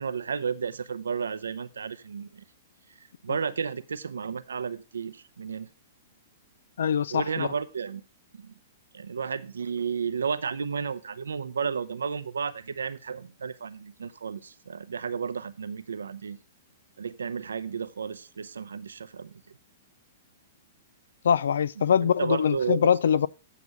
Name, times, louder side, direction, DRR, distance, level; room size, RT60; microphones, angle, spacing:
voice 1, 0.0-2.4 3.0-5.7 7.1-8.0 8.3-8.5 8.9-16.4 17.0-19.4 22.0-22.9, right 6 dB, 90° right, 0.6 m, -32 dB
voice 2, 6.8-7.5 21.2-23.3, left 8 dB, 75° left, 0.4 m, -23 dB
8.3 x 5.9 x 5.3 m
hypercardioid pair, 125°, 0 cm